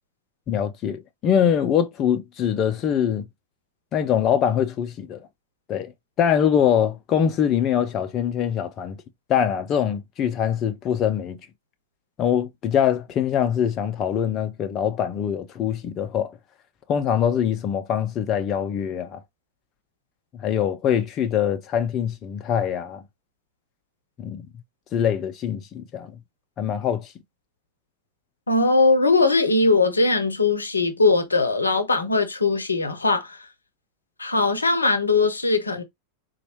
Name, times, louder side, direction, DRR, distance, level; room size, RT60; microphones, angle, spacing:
voice 1, 0.5-3.3 3.9-5.2 5.7-5.9 6.2-9.0 9.3-11.4 12.2-16.4 16.9-19.2 20.3-23.0 24.2-24.4 24.9-26.1 26.6-27.1, left 9 dB, 30° left, 0.4 m, -23 dB
voice 2, 28.5-33.5 34.2-35.8, left 3 dB, 80° left, 0.6 m, -20 dB
4.1 x 2.1 x 2.9 m
figure-of-eight pair, 90°, 0 cm